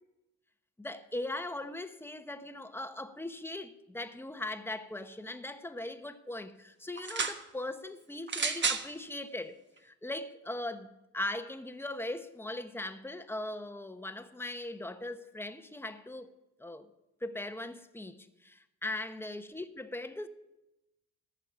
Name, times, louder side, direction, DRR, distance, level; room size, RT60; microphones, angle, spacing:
voice 1, 0.8-16.3 16.6-16.9 17.2-20.3, left 1 dB, 5° left, 1.0 m, -39 dB
sound 1, 7.0-7.4 8.3-8.9 9.8-9.9, right 5 dB, 40° right, 1.3 m, -31 dB
15.0 x 6.6 x 8.8 m
cardioid pair, 90°, 30 cm